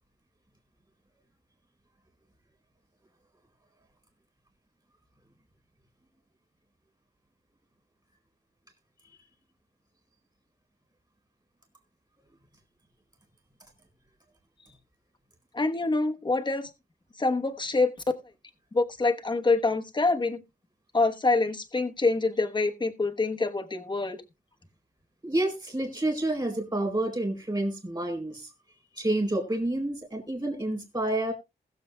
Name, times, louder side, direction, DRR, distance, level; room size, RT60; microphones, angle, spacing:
voice 1, 15.5-16.7 17.2-17.9 18.7-20.4 20.9-24.2, left 3 dB, 25° left, 1.1 m, -26 dB
voice 2, 25.2-28.5 29.0-31.3, right 1 dB, 20° right, 4.0 m, -29 dB
20.5 x 7.1 x 2.3 m
wide cardioid pair, 140°, 18 cm